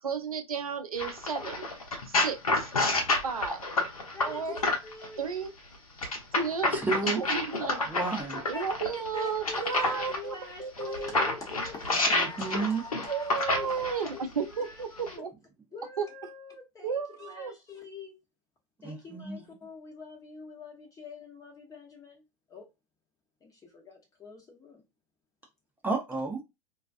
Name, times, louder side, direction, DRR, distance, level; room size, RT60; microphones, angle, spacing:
voice 1, 0.0-1.7 2.1-2.7 3.2-3.7 4.2-4.6 5.2-5.5 6.4-6.8 7.2-7.8 8.5-11.2 13.1-15.3 16.0-16.1 16.8-17.5, right 6 dB, 85° right, 0.4 m, -33 dB
sound 1, 1.0-5.1 6.0-10.2 10.8-14.2 15.0-15.1, left 2 dB, 85° left, 0.7 m, -29 dB
voice 2, 4.1-5.3 8.5-8.6 8.9-15.3 15.7-18.1 18.8-22.2 22.5-22.7 23.4-24.8, left 4 dB, 20° left, 0.8 m, -44 dB
voice 3, 6.7-7.2 7.9-8.4 12.1-12.8 18.8-19.4 25.8-26.4, right 4 dB, 10° right, 0.7 m, -31 dB
2.3 x 2.3 x 2.4 m
figure-of-eight pair, 90°, 18 cm